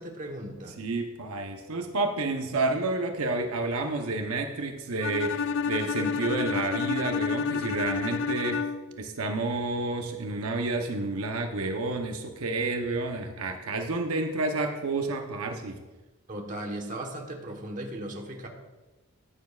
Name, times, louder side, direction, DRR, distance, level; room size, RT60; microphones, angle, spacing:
voice 1, 0.0-0.8 16.3-18.5, right 1 dB, 35° right, 2 dB, 1.2 m, -37 dB
voice 2, 0.8-8.6 8.9-15.8, right 3 dB, 80° right, 4 dB, 0.9 m, -30 dB
Bowed string instrument, 5.0-9.0, left 5 dB, 55° left, 0.4 m, -30 dB
14.5 x 9.4 x 2.4 m, 1.2 s
head